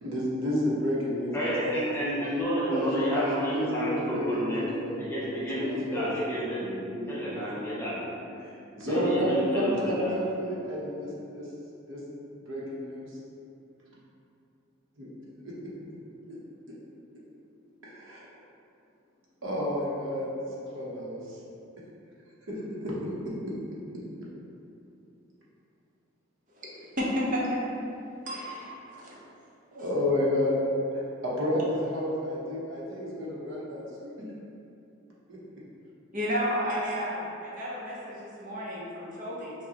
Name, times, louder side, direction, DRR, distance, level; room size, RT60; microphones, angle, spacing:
voice 1, 0.0-1.7 2.7-2.8 3.1-4.9 5.2-6.1 8.4-11.5 11.9-12.0 12.5-13.1 15.0-15.1 15.4-15.5 16.3-16.4 17.8-18.2 19.4-20.3 20.7-21.4 22.5-23.3 29.7-30.5 30.9-34.2 35.3-35.4, left 1 dB, 70° right, -6 dB, 1.0 m, -31 dB
voice 2, 1.3-8.1 8.9-10.2, equal, 10° left, -8 dB, 0.7 m, -30 dB
voice 3, 27.0-27.6 28.3-29.1 29.7-29.8 36.1-39.5, equal, 40° right, -5 dB, 0.8 m, -32 dB
6.1 x 2.3 x 2.9 m, 2.6 s
head